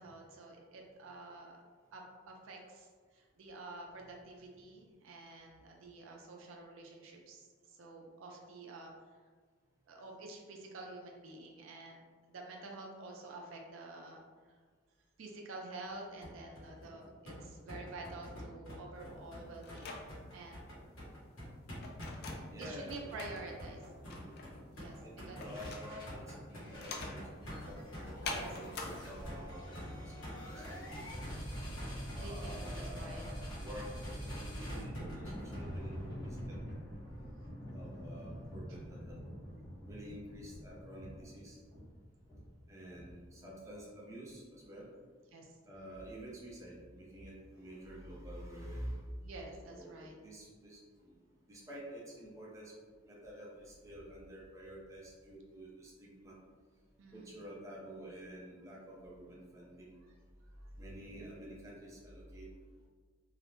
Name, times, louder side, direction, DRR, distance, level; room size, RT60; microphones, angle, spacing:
voice 1, 0.0-1.6 1.9-2.9 3.1-8.9 9.9-14.2 15.2-20.6 22.3-23.8 24.8-25.4 28.3-28.5 32.2-33.2 38.7-38.8 45.3-45.5 49.2-50.1 57.0-57.3, right 2 dB, 75° right, 1 dB, 0.4 m, -49 dB
sound 1, 16.2-35.6, equal, 75° left, 1.0 m, -48 dB
sound 2, 18.9-28.9, left 3 dB, 55° left, 0.3 m, -46 dB
voice 2, 22.5-23.4 24.0-24.4 25.0-29.7 30.0-30.1 30.7-31.3 32.1-36.8 37.7-39.2 39.9-41.6 42.7-44.9 45.7-49.0 49.6-51.2 51.5-52.7 53.1-56.4 57.1-59.9 60.7-62.5, equal, 15° right, -5 dB, 0.5 m, -49 dB
sound 3, 25.4-26.2 26.5-43.4, equal, 25° left, 0.7 m, -45 dB
2.4 x 2.0 x 3.0 m, 1.5 s
head